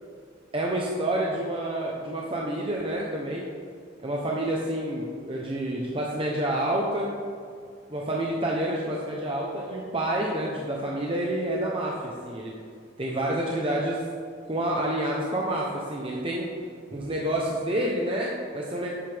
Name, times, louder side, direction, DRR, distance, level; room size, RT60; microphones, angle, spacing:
voice 1, 0.5-3.5 4.0-7.1 7.9-12.5 13.0-14.0 14.5-16.5 16.9-18.9, right 1 dB, 30° right, -2 dB, 0.9 m, -28 dB
12.0 x 8.6 x 3.5 m, 2.2 s
head